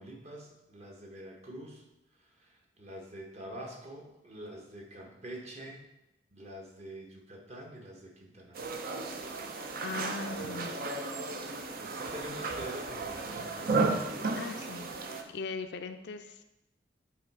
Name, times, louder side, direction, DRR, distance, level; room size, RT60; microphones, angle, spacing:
voice 1, 0.0-1.8 2.4-5.8 6.3-8.8 11.8-14.1, right 1 dB, 40° right, -1 dB, 1.2 m, -46 dB
sound 1, 8.6-15.2, right 3 dB, 55° right, 0.6 m, -34 dB
voice 2, 9.8-10.7 14.4-14.9 15.3-16.4, left 4 dB, 70° left, 8 dB, 0.5 m, -39 dB
7.7 x 3.2 x 4.7 m, 0.93 s
head